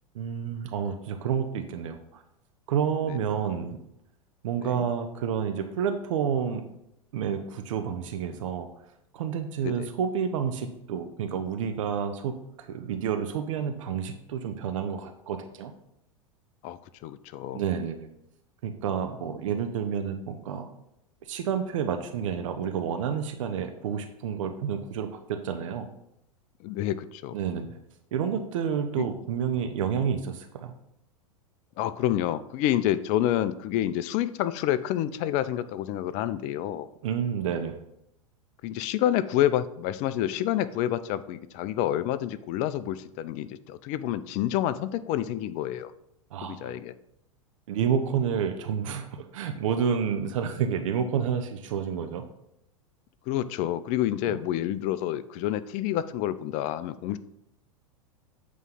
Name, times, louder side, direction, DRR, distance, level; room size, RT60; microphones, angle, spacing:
voice 1, 0.1-2.2 2.7-3.8 4.4-6.7 7.1-8.7 9.1-15.7 17.5-18.1 18.6-20.7 21.3-25.9 27.3-27.8 28.1-30.7 37.0-37.8 46.3-46.7 47.7-52.2 54.3-54.4, right 7 dB, 60° right, 6 dB, 0.8 m, -29 dB
voice 2, 16.6-17.6 26.6-27.4 29.0-29.1 31.8-36.9 38.6-45.9 46.4-46.9 53.3-57.2, left 12 dB, 40° left, 14 dB, 0.5 m, -28 dB
8.0 x 3.2 x 5.5 m, 0.78 s
figure-of-eight pair, 90°, 18 cm